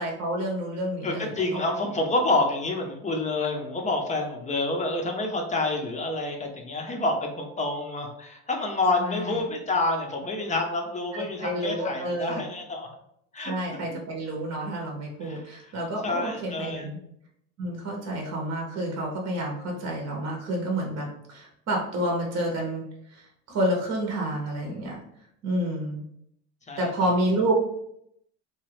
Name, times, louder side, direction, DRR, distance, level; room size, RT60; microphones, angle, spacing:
voice 1, 0.0-1.6 9.0-9.3 11.1-12.4 13.4-17.0 17.6-22.8 23.1-23.2 23.5-25.0 25.4-26.0 26.8-27.6, right 1 dB, 45° right, 0 dB, 0.8 m, -29 dB
voice 2, 1.0-12.9 13.3-13.8 15.2-15.7 16.0-16.9 26.7-27.1, left 2 dB, 20° left, 2 dB, 0.6 m, -28 dB
2.8 x 2.3 x 3.2 m, 0.73 s
cardioid pair, 110°, 36 cm